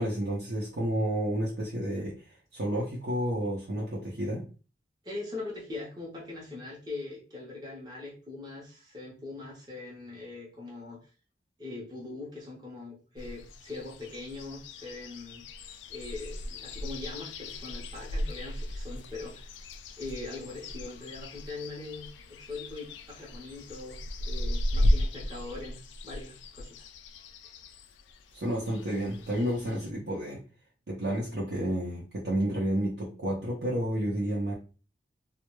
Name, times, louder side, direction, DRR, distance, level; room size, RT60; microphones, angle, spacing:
voice 1, 0.0-2.2 2.5-4.4 28.3-30.4 30.9-34.5, right 1 dB, 70° right, -5 dB, 0.6 m, -30 dB
voice 2, 5.0-11.0 11.6-15.4 15.9-19.5 20.0-26.9, left 3 dB, 25° right, -4 dB, 0.6 m, -41 dB
sound 1, 13.2-29.9, left 1 dB, 80° left, 0.3 m, -35 dB
2.2 x 2.0 x 3.0 m, 0.36 s
head